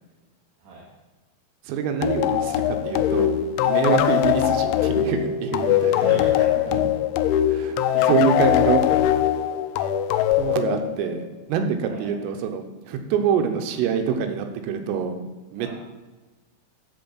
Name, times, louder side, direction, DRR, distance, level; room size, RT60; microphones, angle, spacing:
voice 1, 0.6-0.9 5.9-6.7 7.9-8.3 11.9-12.2 15.6-15.7, right 3 dB, 60° right, -6 dB, 3.9 m, -37 dB
voice 2, 1.7-6.0 6.7-6.8 7.5-7.8 8.1-9.0 9.4-9.5 10.4-15.2 15.5-15.7, right 7 dB, 90° right, 6 dB, 3.7 m, -25 dB
sound 1, 2.0-11.3, left 11 dB, 85° left, 2.8 m, -21 dB
13.5 x 4.5 x 8.0 m, 1.2 s
omnidirectional pair, 5.7 m